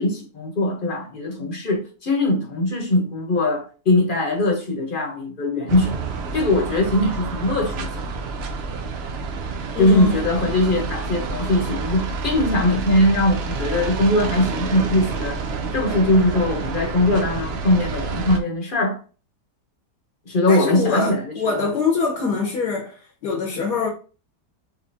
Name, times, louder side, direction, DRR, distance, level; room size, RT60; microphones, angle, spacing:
voice 1, 0.0-6.0 6.3-8.3 9.8-15.4 15.7-19.0 20.3-21.7, left 1 dB, 35° left, 1.0 m, -21 dB
sound 1, 5.7-18.4, right 4 dB, 80° right, 0.5 m, -29 dB
voice 2, 9.7-10.2 20.5-23.9, left 5 dB, 75° left, 1.5 m, -24 dB
4.8 x 2.8 x 2.6 m
omnidirectional pair, 1.8 m